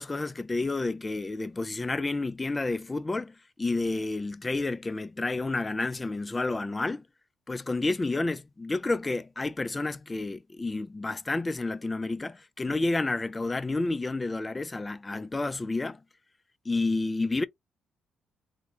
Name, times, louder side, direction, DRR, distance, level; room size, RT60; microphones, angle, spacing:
voice 1, 0.0-7.0 7.5-16.0 16.7-17.4, left 2 dB, 20° left, 0.3 m, -30 dB
2.8 x 2.1 x 4.1 m
cardioid pair, 90°, 0 cm